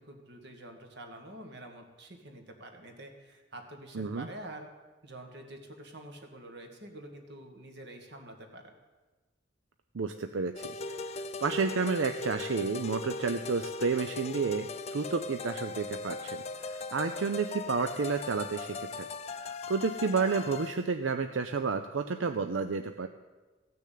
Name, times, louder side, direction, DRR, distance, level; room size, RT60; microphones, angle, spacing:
voice 1, 0.0-4.7 5.0-8.7, right 1 dB, 60° right, 4 dB, 1.9 m, -47 dB
voice 2, 3.9-4.3 9.9-19.1 19.4-23.1, right 4 dB, 80° right, 8 dB, 0.6 m, -31 dB
sound 1, 10.6-20.9, left 3 dB, 35° left, 0.5 m, -39 dB
15.5 x 6.7 x 8.5 m, 1.2 s
head